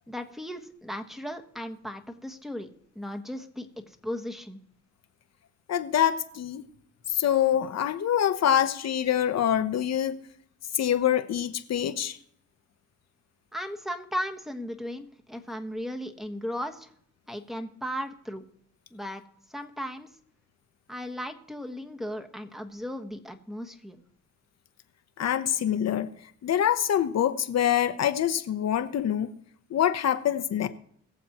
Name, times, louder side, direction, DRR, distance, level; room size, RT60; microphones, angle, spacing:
voice 1, 0.1-2.7 2.9-4.6 13.5-16.9 17.3-18.5 18.9-19.2 19.5-20.1 20.9-24.0, equal, ahead, 1.4 m, -36 dB
voice 2, 5.7-6.7 7.1-10.2 10.7-12.2 25.2-26.1 26.4-29.3 29.7-30.7, left 10 dB, 60° left, 1.0 m, -25 dB
21.5 x 7.2 x 3.0 m
cardioid pair, 90°, 30 cm